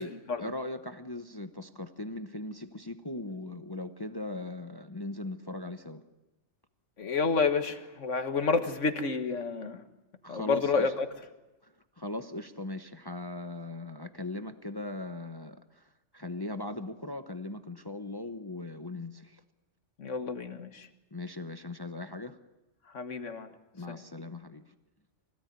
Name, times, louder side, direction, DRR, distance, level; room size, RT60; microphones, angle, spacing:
voice 1, 0.0-6.0 10.2-10.9 11.6-19.4 21.1-22.4 23.7-24.6, left 2 dB, 20° left, 0.9 m, -39 dB
voice 2, 7.0-9.8 10.3-11.1 20.0-20.9 22.9-23.5 23.9-24.0, left 4 dB, 85° left, 1.8 m, -29 dB
25.5 x 17.0 x 9.5 m
omnidirectional pair, 1.2 m